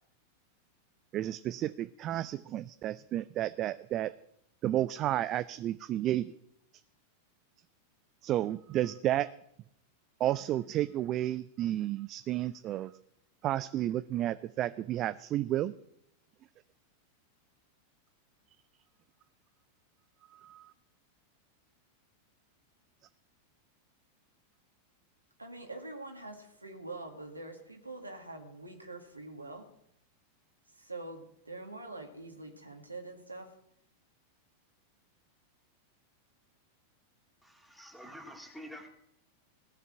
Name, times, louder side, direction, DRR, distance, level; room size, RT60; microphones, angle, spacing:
voice 1, 1.1-4.1 4.6-6.3 8.2-9.3 10.2-12.9 13.4-15.7 20.3-20.7, right 13 dB, 35° right, 14 dB, 0.4 m, -32 dB
voice 2, 25.4-29.7 30.8-33.5, right 2 dB, 85° right, 3 dB, 2.0 m, -44 dB
voice 3, 37.4-38.9, equal, ahead, 2 dB, 2.4 m, -48 dB
16.5 x 5.8 x 8.8 m, 0.74 s
figure-of-eight pair, 90°, 0 cm